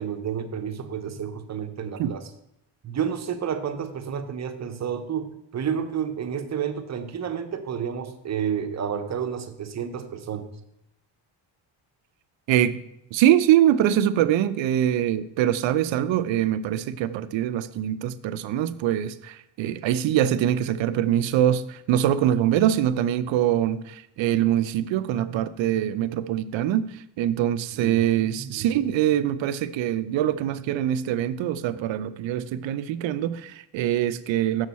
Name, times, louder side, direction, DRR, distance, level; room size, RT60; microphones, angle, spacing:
voice 1, 0.0-2.2 2.8-10.5 27.7-28.7, right 8 dB, 35° right, 0.7 m, -30 dB
voice 2, 12.5-12.8 13.1-34.7, right 11 dB, 70° right, 0.5 m, -23 dB
6.4 x 6.2 x 4.1 m
cardioid pair, 115°, 48 cm